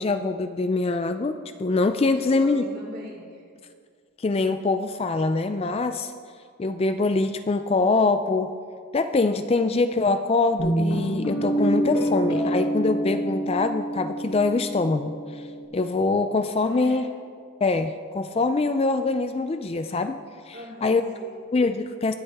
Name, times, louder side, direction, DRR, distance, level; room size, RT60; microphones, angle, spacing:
voice 1, 0.0-2.6 4.2-6.1 6.6-8.5 8.9-15.4 15.7-17.0 17.6-20.2 20.5-21.0 21.5-22.1, left 3 dB, 25° left, 9 dB, 0.3 m, -24 dB
voice 2, 2.0-3.4 16.6-17.1 20.5-21.4, equal, 45° right, -4 dB, 2.9 m, -41 dB
Guitar, 10.6-15.6, right 1 dB, 85° left, 3.2 m, -27 dB
23.0 x 8.6 x 3.5 m, 2.1 s
head